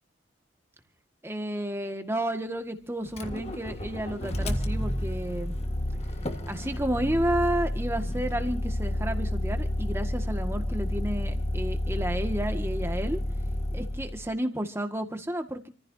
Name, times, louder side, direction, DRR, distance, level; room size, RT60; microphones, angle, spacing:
voice 1, 1.2-5.6 6.5-13.2 13.7-15.7, right 1 dB, 15° right, 6 dB, 1.8 m, -31 dB
Motor vehicle (road), 3.1-14.3, left 1 dB, 35° left, 1.6 m, -30 dB
28.5 x 15.0 x 2.8 m, 0.37 s
head